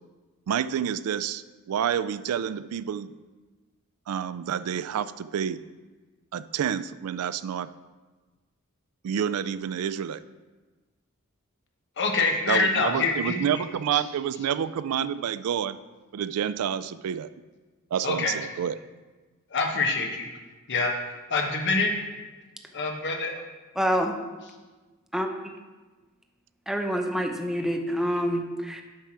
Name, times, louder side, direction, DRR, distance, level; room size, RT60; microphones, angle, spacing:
voice 1, 0.5-3.1 4.1-5.6 6.3-7.7 9.0-10.2 12.5-15.8 16.1-17.3 17.9-18.8, right 8 dB, 90° right, 15 dB, 0.3 m, -28 dB
voice 2, 12.0-13.4 13.9-14.0 18.0-18.3 19.5-20.3 20.7-20.9 21.3-21.9 22.7-23.4, left 3 dB, 55° left, 2 dB, 1.1 m, -25 dB
voice 3, 23.8-24.1 25.1-25.4 26.7-28.8, equal, ahead, 3 dB, 0.6 m, -27 dB
7.7 x 4.6 x 5.8 m, 1.3 s
head